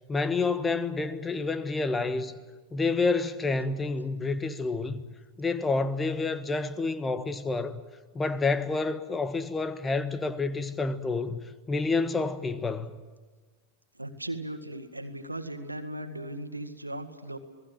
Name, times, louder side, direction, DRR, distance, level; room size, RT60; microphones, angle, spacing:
voice 1, 0.1-2.3 2.7-5.0 5.4-7.8 8.1-11.4 11.7-13.0, left 3 dB, 15° left, 1.4 m, -28 dB
voice 2, 13.9-17.4, right 1 dB, 85° right, 1.9 m, -37 dB
28.0 x 19.5 x 7.6 m
figure-of-eight pair, 90°, 0 cm